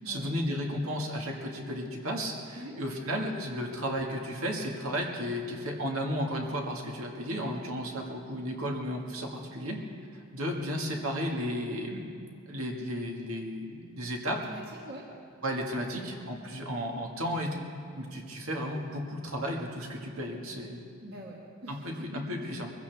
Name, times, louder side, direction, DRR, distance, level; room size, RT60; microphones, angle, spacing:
voice 1, 0.0-9.8 10.1-12.1 12.5-14.4 15.4-17.6 18.0-20.8 21.7-22.7, equal, 70° right, 1 dB, 1.9 m, -34 dB
voice 2, 14.4-15.1 21.0-22.4, right 1 dB, 45° right, -1 dB, 1.5 m, -44 dB
22.5 x 15.5 x 3.5 m, 2.5 s
head